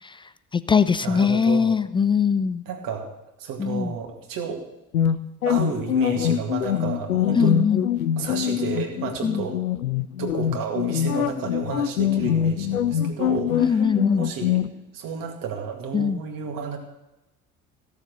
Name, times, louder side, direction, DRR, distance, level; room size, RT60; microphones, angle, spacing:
voice 1, 0.5-2.6 3.6-3.9 7.3-7.9 9.2-9.5 13.6-14.3 15.9-16.2, left 6 dB, 15° left, 14 dB, 0.3 m, -21 dB
voice 2, 1.0-1.8 2.7-3.1 3.4-4.6 5.5-7.6 8.2-9.6 10.2-13.9 14.2-14.6 14.9-16.8, right 6 dB, 50° right, 3 dB, 2.2 m, -31 dB
sound 1, 4.9-14.7, left 10 dB, 80° left, 0.6 m, -24 dB
15.5 x 7.0 x 6.6 m, 0.94 s
figure-of-eight pair, 55°, 42 cm